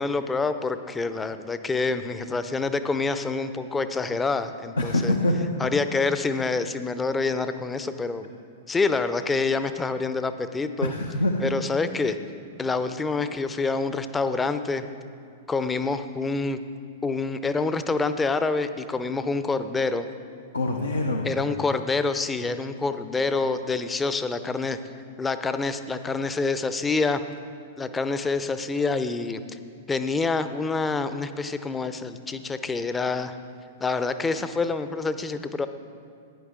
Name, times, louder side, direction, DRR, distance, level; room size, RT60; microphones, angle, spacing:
voice 1, 0.0-5.1 5.6-8.3 8.7-10.9 11.4-12.2 12.6-14.8 15.5-16.6 17.0-20.1 21.2-24.8 25.2-27.2 27.8-29.6 29.9-33.4 33.8-35.7, left 3 dB, 15° left, 11 dB, 0.6 m, -27 dB
voice 2, 4.8-5.5 10.8-11.5 20.5-21.3, left 1 dB, 80° left, 3 dB, 0.8 m, -24 dB
15.5 x 9.9 x 3.7 m, 2.4 s
figure-of-eight pair, 100°, 0 cm